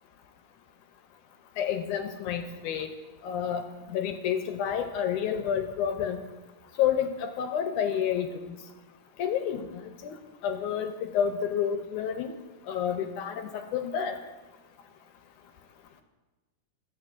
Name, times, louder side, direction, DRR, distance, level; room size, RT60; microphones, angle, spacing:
voice 1, 1.6-2.9 3.2-3.6 3.9-6.2 6.8-8.4 9.2-10.2 10.4-12.3 12.7-14.1, left 8 dB, 80° left, 6 dB, 2.0 m, -29 dB
26.0 x 8.9 x 2.6 m, 1.2 s
omnidirectional pair, 3.8 m